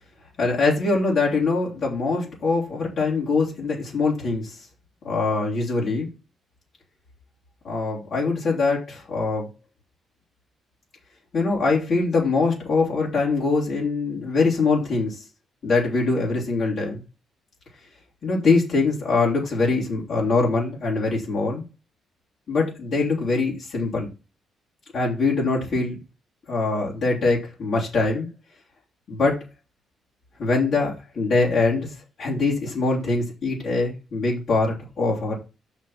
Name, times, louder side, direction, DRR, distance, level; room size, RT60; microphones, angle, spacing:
voice 1, 0.4-4.6 5.0-6.1 7.6-9.5 11.3-15.2 15.6-17.0 18.2-21.6 22.5-24.1 24.9-26.0 26.5-28.3 29.1-29.4 30.4-35.4, left 3 dB, 60° left, -4 dB, 3.5 m, -23 dB
6.2 x 6.0 x 5.8 m, 0.29 s
cardioid pair, 90°, 0 cm